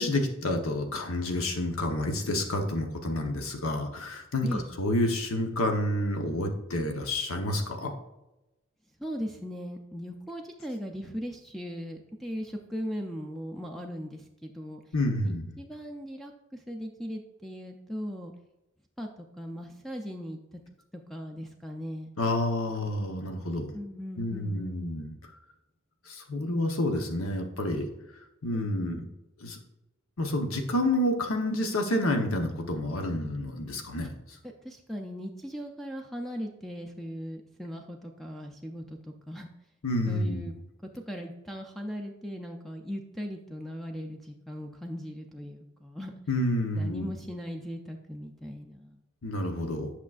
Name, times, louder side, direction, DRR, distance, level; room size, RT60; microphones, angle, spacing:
voice 1, 0.0-7.9 14.9-15.5 22.2-23.7 24.2-25.1 26.1-27.9 28.4-29.0 29.4-29.6 30.2-34.1 39.8-40.5 46.3-47.1 49.2-49.9, left 1 dB, 80° left, 4 dB, 1.0 m, -29 dB
voice 2, 9.0-14.8 15.2-18.3 19.0-20.4 20.9-22.1 23.7-25.1 28.5-29.0 34.6-39.5 40.1-40.5 40.9-46.1 46.7-49.0, equal, ahead, 2 dB, 0.4 m, -38 dB
8.4 x 6.1 x 2.4 m, 0.95 s
head